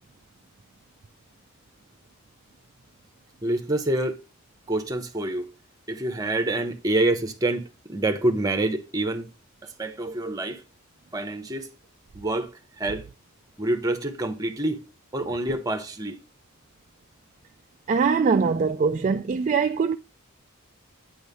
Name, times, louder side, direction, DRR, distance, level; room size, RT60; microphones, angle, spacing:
voice 1, 3.4-4.2 4.7-5.5 5.9-7.6 7.9-9.3 9.6-10.6 11.1-11.7 12.1-13.0 13.6-14.8 15.1-16.2, right 2 dB, 15° right, 0.9 m, -27 dB
voice 2, 17.9-20.0, right 5 dB, 35° right, 0.3 m, -22 dB
9.2 x 3.2 x 5.3 m
head